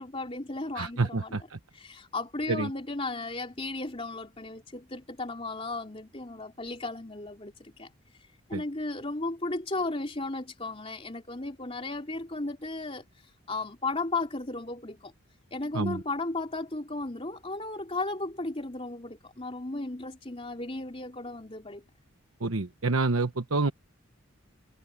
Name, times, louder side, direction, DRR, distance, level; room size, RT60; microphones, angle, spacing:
voice 1, 0.0-1.4 1.7-7.9 8.2-15.1 15.5-21.8, left 2 dB, 25° left, 3.5 m, -35 dB
voice 2, 0.7-1.6 2.5-2.7 8.5-8.6 15.7-16.0 22.4-23.7, right 3 dB, 80° right, 1.1 m, -28 dB
head